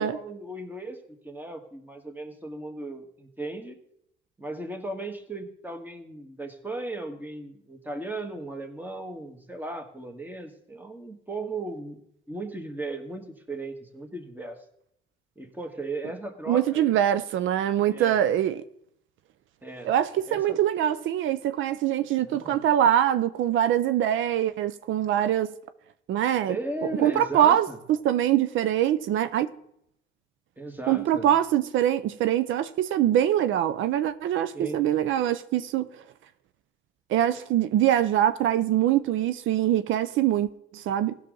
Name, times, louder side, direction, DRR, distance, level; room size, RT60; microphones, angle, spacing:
voice 1, 0.0-3.8 4.4-12.0 12.3-14.6 15.4-17.0 17.9-18.2 19.6-19.9 20.3-20.6 22.2-22.6 26.5-27.8 30.6-31.4 34.5-34.8, right 2 dB, 10° right, 1.6 m, -36 dB
voice 2, 16.5-18.6 19.8-25.5 26.1-26.6 27.0-29.5 30.9-35.9 37.1-40.5 40.7-41.2, right 11 dB, 80° right, 0.5 m, -23 dB
16.0 x 6.3 x 3.8 m
cardioid pair, 90°, 20 cm